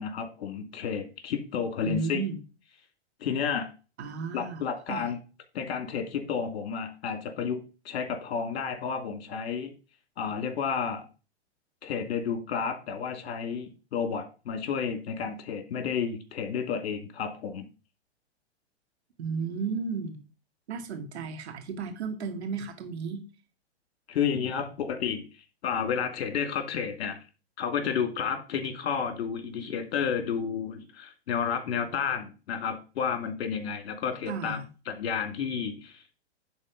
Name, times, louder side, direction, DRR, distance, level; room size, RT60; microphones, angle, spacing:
voice 1, 0.0-2.2 3.2-3.7 4.3-5.2 5.5-9.7 10.2-11.1 11.8-17.7 24.1-25.3 25.6-27.2 27.6-34.6 34.9-36.1, left 7 dB, 65° left, 2.6 m, -31 dB
voice 2, 1.8-2.4 4.0-4.6 4.9-5.1 19.2-20.2 20.7-23.2 34.3-34.6, right 5 dB, 70° right, 2.4 m, -33 dB
11.0 x 4.1 x 5.3 m
hypercardioid pair, 130°, 34 cm